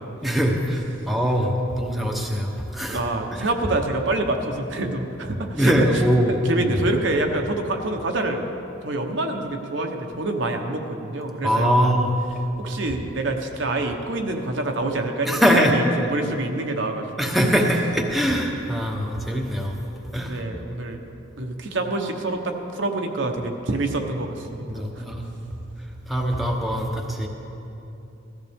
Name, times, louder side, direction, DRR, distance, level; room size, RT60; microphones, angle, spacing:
voice 1, 0.2-3.0 3.3-3.5 5.5-6.6 11.4-12.1 15.3-15.7 17.2-19.8 20.1-20.4 24.7-25.4 26.1-27.3, equal, ahead, 0 dB, 1.0 m, -22 dB
voice 2, 2.9-6.0 6.3-8.4 8.8-11.9 12.6-17.1 20.3-21.0 21.4-25.0, right 2 dB, 65° right, 3 dB, 1.0 m, -26 dB
16.0 x 14.0 x 3.6 m, 2.9 s
head